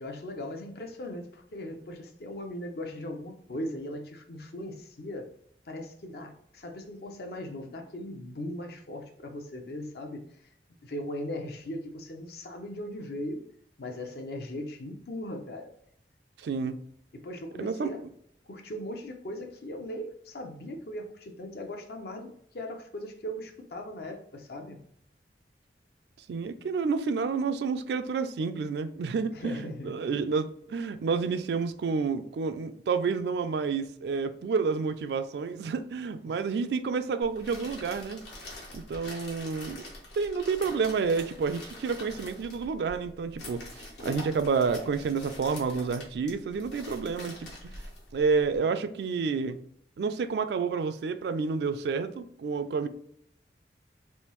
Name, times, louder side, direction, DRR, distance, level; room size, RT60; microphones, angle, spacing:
voice 1, 0.0-5.3 5.7-10.2 10.8-13.4 13.8-15.7 17.2-18.0 18.5-24.8 29.3-30.0 36.3-36.4 52.8-52.9, left 1 dB, 60° left, 0.6 m, -39 dB
voice 2, 16.4-16.8 17.6-17.9 26.3-38.2 38.7-39.8 40.1-47.5 48.1-49.6 50.0-52.9, right 5 dB, 70° right, 0.3 m, -29 dB
sound 1, 37.2-48.6, left 1 dB, 75° left, 1.4 m, -44 dB
3.4 x 2.6 x 3.0 m
head